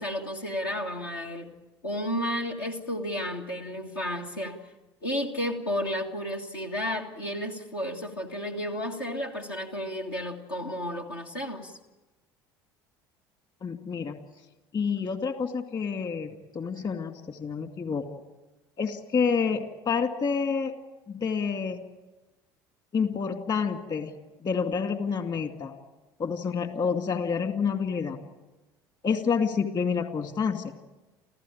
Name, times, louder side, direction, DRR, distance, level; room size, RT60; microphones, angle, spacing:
voice 1, 0.0-1.5 1.8-4.6 5.0-11.8, equal, 80° left, 0 dB, 1.9 m, -32 dB
voice 2, 13.6-14.2 14.7-18.1 18.8-20.7 21.1-21.8 22.9-24.1 24.4-25.8 26.2-28.2 29.0-30.8, left 6 dB, 40° left, 7 dB, 2.4 m, -28 dB
29.0 x 15.0 x 8.8 m, 1.1 s
figure-of-eight pair, 65°, 12 cm